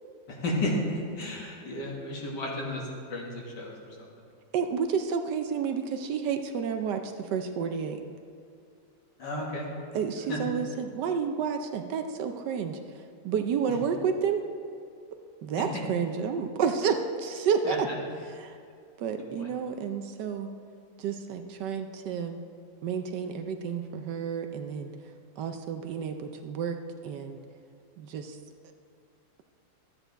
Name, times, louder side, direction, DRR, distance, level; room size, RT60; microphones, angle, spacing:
voice 1, 0.3-3.7 9.2-9.7 10.3-10.4 17.7-17.9 19.4-19.5, left 1 dB, 65° left, -2 dB, 2.3 m, -32 dB
voice 2, 4.5-8.0 9.9-14.4 15.4-17.9 18.2-18.5 19.0-20.5 21.0-22.4 22.8-24.9 25.4-26.8 27.0-27.4 28.0-28.4, right 6 dB, 70° right, 6 dB, 1.2 m, -30 dB
12.5 x 9.1 x 4.0 m, 2.4 s
omnidirectional pair, 2.1 m